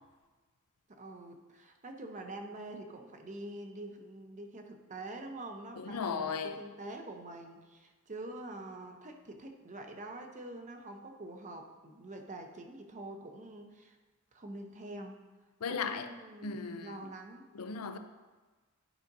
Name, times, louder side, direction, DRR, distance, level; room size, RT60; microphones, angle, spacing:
voice 1, 1.0-14.0 14.3-15.2 15.7-17.5, right 2 dB, 35° right, 0.7 m, -45 dB
voice 2, 5.9-6.6 15.6-16.1 16.4-16.9 17.5-18.0, left 5 dB, 85° left, 0.5 m, -36 dB
11.0 x 5.0 x 2.6 m
head